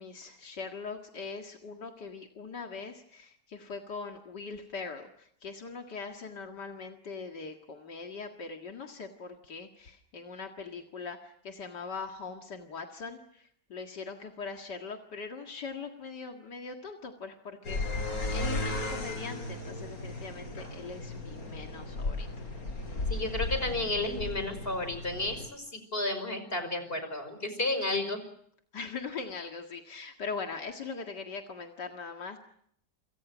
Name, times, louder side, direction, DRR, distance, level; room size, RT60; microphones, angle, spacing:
voice 1, 0.0-18.0 18.3-22.3 28.7-32.4, left 4 dB, 80° left, 3 dB, 2.5 m, -41 dB
sound 1, 17.6-25.5, left 2 dB, 55° left, 4.7 m, -35 dB
voice 2, 23.1-28.2, left 2 dB, 30° left, 9 dB, 5.6 m, -32 dB
28.5 x 27.0 x 6.3 m, 0.67 s
omnidirectional pair, 1.8 m